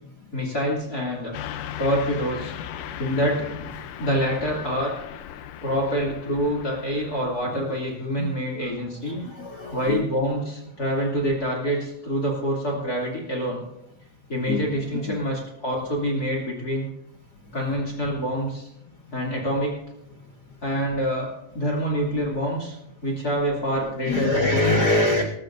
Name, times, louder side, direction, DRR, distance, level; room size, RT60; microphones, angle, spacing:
voice 1, 0.3-1.3 1.8-2.5 3.0-3.7 4.0-4.9 5.6-9.2 9.7-13.6 14.3-16.9 17.5-18.7 19.1-19.8 20.6-21.3 21.5-22.8 23.0-24.4 24.8-25.0, equal, 30° left, -1 dB, 3.0 m, -26 dB
Car passing by / Truck, 1.3-7.2, left 10 dB, 85° left, 2.3 m, -37 dB
voice 2, 9.0-10.1 14.5-14.6 15.1-15.2 24.0-25.2, left 2 dB, 55° left, 2 dB, 1.1 m, -23 dB
21.5 x 13.5 x 2.6 m, 0.83 s
omnidirectional pair, 3.6 m